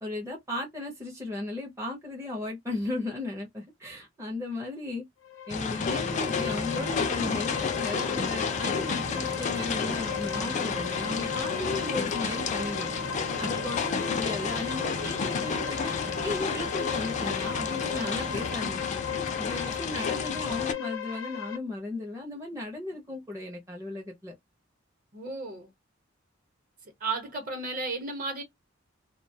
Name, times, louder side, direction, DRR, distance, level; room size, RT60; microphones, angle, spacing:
voice 1, 0.0-5.0 5.5-12.9 13.4-15.9 16.2-19.0 19.4-24.3, left 2 dB, 15° right, 0.6 m, -36 dB
sound 1, 5.2-21.6, left 9 dB, 80° left, 0.7 m, -36 dB
sound 2, 5.5-20.7, left 5 dB, 40° left, 0.4 m, -31 dB
sound 3, 6.1-18.5, right 2 dB, 80° right, 0.4 m, -42 dB
voice 2, 25.1-25.7 27.0-28.4, right 3 dB, 45° right, 0.9 m, -33 dB
2.2 x 2.2 x 2.6 m
head